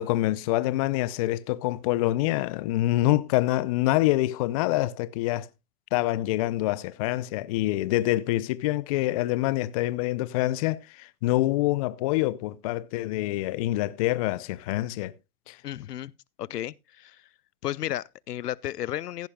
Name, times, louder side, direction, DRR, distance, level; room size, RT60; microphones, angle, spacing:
voice 1, 0.0-5.5 5.9-15.1 15.5-15.6, left 16 dB, 25° left, 0.5 m, -26 dB
voice 2, 15.6-16.1 16.4-17.3 17.6-19.3, left 13 dB, 80° left, 0.7 m, -33 dB
15.5 x 10.5 x 2.2 m
hypercardioid pair, 130°, 47 cm